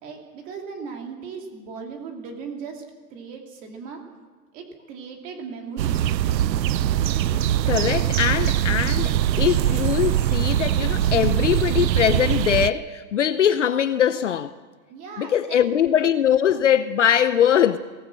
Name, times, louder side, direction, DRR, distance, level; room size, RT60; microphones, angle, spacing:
voice 1, 0.0-2.8 3.1-4.0 4.5-6.2 14.9-15.6, right 5 dB, 15° right, 2.4 m, -37 dB
sound 1, 5.8-12.7, right 12 dB, 85° right, 0.8 m, -22 dB
voice 2, 7.7-14.5 15.2-17.8, left 9 dB, 45° left, 0.8 m, -21 dB
23.0 x 18.5 x 7.6 m
hypercardioid pair, 180°, 49 cm